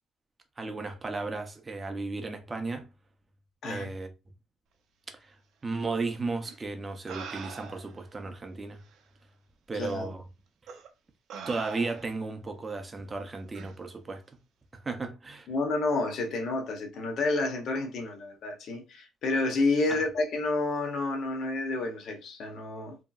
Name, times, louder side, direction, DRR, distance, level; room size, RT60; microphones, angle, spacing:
voice 1, 0.6-2.9 3.6-4.1 5.2-5.4 5.6-8.8 9.7-10.2 11.5-14.2 14.7-15.5 19.9-20.0, right 3 dB, 20° right, 0.5 m, -34 dB
sound 1, 6.4-6.5 7.1-8.0 8.9-9.0 9.8-10.0 10.7-10.9 11.3-12.3 13.5-13.7, right 6 dB, 65° right, 0.5 m, -43 dB
voice 2, 9.8-10.1 15.5-23.0, left 3 dB, 50° left, 0.7 m, -30 dB
2.9 x 2.7 x 2.3 m
cardioid pair, 165°, 0 cm